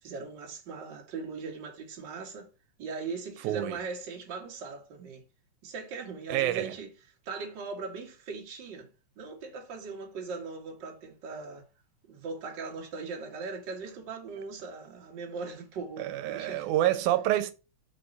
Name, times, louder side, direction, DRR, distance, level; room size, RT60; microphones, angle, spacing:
voice 1, 0.0-2.5 2.8-5.2 5.6-6.9 7.2-8.9 9.2-11.6 12.1-16.7, right 4 dB, 45° right, 2.0 m, -39 dB
voice 2, 3.4-3.8 6.3-6.8 16.0-17.5, right 13 dB, 90° right, 2.1 m, -27 dB
4.9 x 4.6 x 5.3 m
omnidirectional pair, 3.4 m